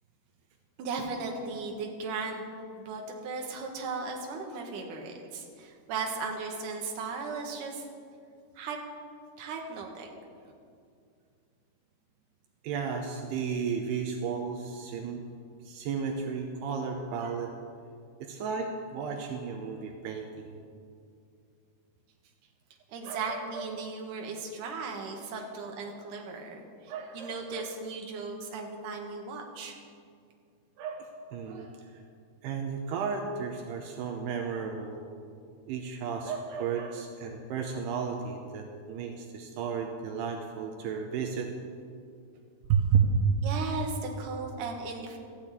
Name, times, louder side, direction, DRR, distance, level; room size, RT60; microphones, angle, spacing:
voice 1, 0.8-2.5 2.8-7.8 8.6-8.8 9.4-10.1 22.9-29.8 43.4-45.2, right 4 dB, 60° right, 1 dB, 2.8 m, -36 dB
voice 2, 12.6-15.2 15.6-17.5 18.2-20.6 23.0-23.7 26.9-27.7 30.8-32.0 32.4-35.0 35.7-41.5 42.7-43.5, right 6 dB, 80° right, 3 dB, 2.8 m, -32 dB
14.0 x 8.4 x 9.0 m, 2.3 s
omnidirectional pair, 4.8 m